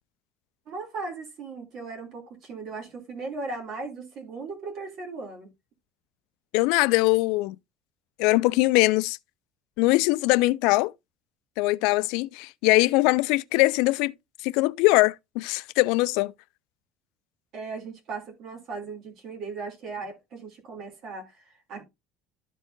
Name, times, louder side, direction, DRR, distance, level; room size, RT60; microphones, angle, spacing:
voice 1, 0.7-5.5 17.5-21.8, right 4 dB, 45° right, 2.7 m, -37 dB
voice 2, 6.5-7.6 8.2-9.2 9.8-10.9 11.6-14.1 14.4-16.3, left 22 dB, 80° left, 0.3 m, -22 dB
13.0 x 4.5 x 2.6 m
cardioid pair, 165°, 0 cm